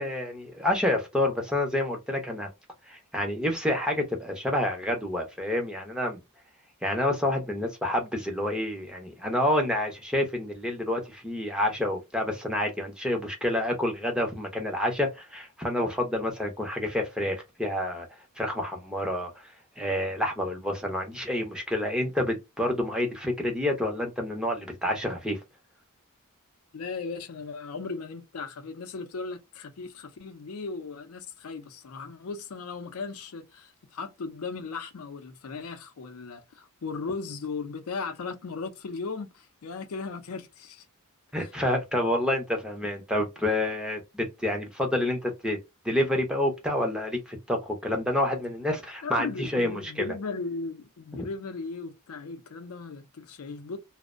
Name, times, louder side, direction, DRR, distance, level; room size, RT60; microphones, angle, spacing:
voice 1, 0.0-2.5 2.9-6.2 6.8-18.1 18.4-19.3 19.8-25.4 41.3-45.6 45.8-50.1, left 1 dB, 5° right, 0.6 m, -28 dB
voice 2, 26.7-40.9 41.4-41.5 49.0-53.8, left 4 dB, 75° left, 0.5 m, -37 dB
2.5 x 2.0 x 2.4 m
head